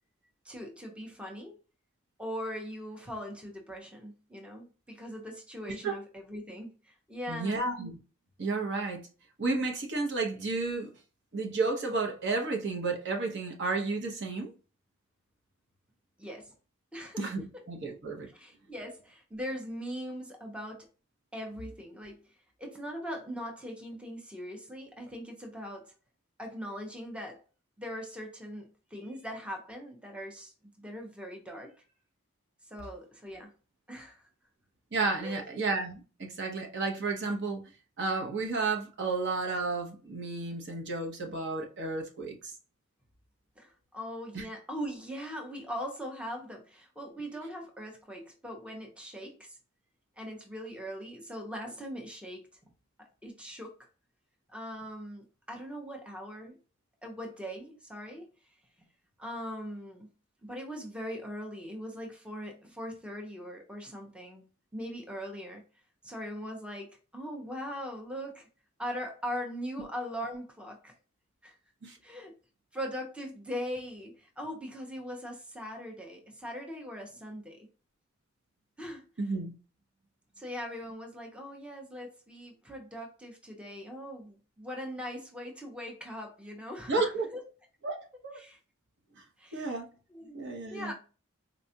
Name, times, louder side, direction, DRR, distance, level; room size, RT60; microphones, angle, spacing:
voice 1, 0.4-1.6 2.2-7.7 16.2-16.5 16.9-17.3 18.3-20.9 21.3-22.2 22.6-25.9 26.4-27.4 27.8-31.8 32.7-33.5 33.9-34.2 35.2-35.5 43.6-49.6 50.2-52.5 53.0-53.8 54.5-56.5 57.0-58.3 59.2-60.1 60.4-64.4 64.7-65.6 66.0-68.5 68.8-70.9 71.4-71.6 72.0-72.3 72.7-77.7 78.8-79.0 80.4-87.0 87.3-87.4 88.3-88.6 89.4-89.8 90.1-90.4 90.7-90.9, equal, 5° right, 0.6 m, -40 dB
voice 2, 7.3-7.9 8.4-9.0 9.4-10.9 11.3-14.5 17.2-18.3 34.9-37.7 38.0-42.5 44.3-44.5 71.8-72.0 79.2-79.5 86.9-87.3 87.8-88.4 89.5-89.9 90.3-90.9, right 3 dB, 55° right, 0.9 m, -32 dB
4.1 x 2.3 x 2.7 m
head